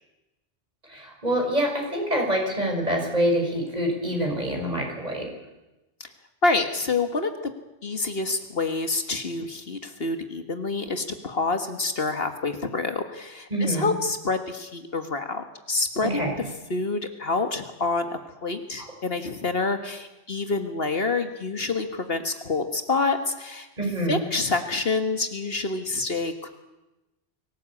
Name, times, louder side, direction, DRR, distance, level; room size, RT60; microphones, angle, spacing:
voice 1, 0.9-5.3 13.5-13.9 16.0-16.4 18.8-18.9 23.8-24.3, right 1 dB, 35° right, 1 dB, 5.7 m, -26 dB
voice 2, 6.4-7.5 7.8-16.3 16.7-23.7 24.1-26.5, left 3 dB, 60° left, 7 dB, 1.8 m, -27 dB
24.0 x 17.5 x 8.5 m, 1.0 s
omnidirectional pair, 1.1 m